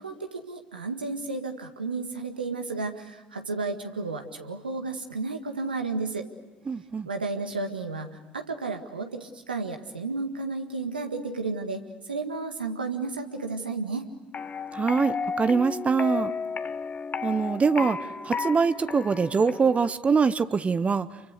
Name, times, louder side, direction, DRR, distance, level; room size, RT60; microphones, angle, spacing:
voice 1, 0.0-6.3 7.0-14.1, right 3 dB, 85° right, 5 dB, 1.8 m, -32 dB
voice 2, 6.7-7.1 14.7-16.3 17.2-21.1, right 5 dB, 25° right, 15 dB, 0.9 m, -24 dB
sound 1, 14.3-19.9, left 5 dB, 30° left, 1.2 m, -33 dB
29.0 x 24.5 x 6.6 m, 1.2 s
figure-of-eight pair, 60°, 5 cm